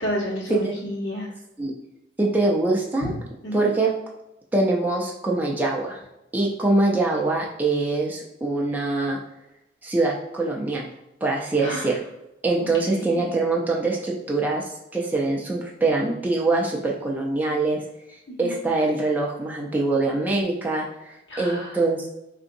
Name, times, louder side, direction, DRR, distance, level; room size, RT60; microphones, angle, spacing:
voice 1, 0.0-1.3 3.0-3.1 3.4-3.7 11.6-11.9 12.8-13.3 18.4-18.5 21.3-21.7, equal, 70° left, -4 dB, 1.2 m, -30 dB
voice 2, 2.2-3.1 3.5-3.9 4.5-6.0 6.3-9.2 9.8-10.9 11.2-12.0 12.4-14.6 14.9-17.8 18.4-22.1, right 2 dB, 10° right, -2 dB, 0.4 m, -23 dB
3.7 x 2.6 x 2.6 m, 0.88 s
head